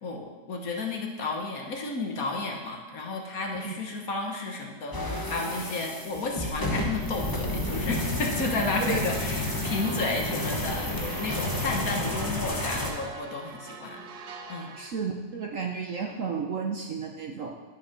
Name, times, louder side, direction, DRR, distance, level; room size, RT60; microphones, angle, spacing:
voice 1, 0.0-14.0 14.5-14.8, left 3 dB, 55° left, 2 dB, 1.4 m, -32 dB
sound 1, 4.9-12.9, left 1 dB, 15° left, 0.8 m, -31 dB
sound 2, 8.4-14.9, right 4 dB, 90° right, 1.6 m, -44 dB
voice 2, 14.8-17.5, right 5 dB, 55° right, 1 dB, 1.0 m, -32 dB
11.0 x 5.8 x 5.8 m, 1.3 s
omnidirectional pair, 2.0 m